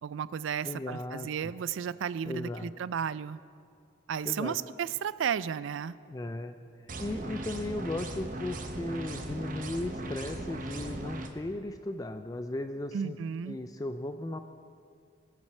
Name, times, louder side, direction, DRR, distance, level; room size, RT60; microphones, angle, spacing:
voice 1, 0.0-3.4 4.1-5.9 12.9-13.6, right 8 dB, 75° right, 17 dB, 0.3 m, -33 dB
voice 2, 0.6-1.5 2.2-2.7 4.2-4.6 6.1-13.2 13.5-14.4, left 2 dB, 20° left, 8 dB, 0.3 m, -36 dB
sound 1, 6.9-11.3, right 1 dB, 40° right, 0.9 m, -38 dB
21.0 x 7.3 x 4.4 m, 2.2 s
head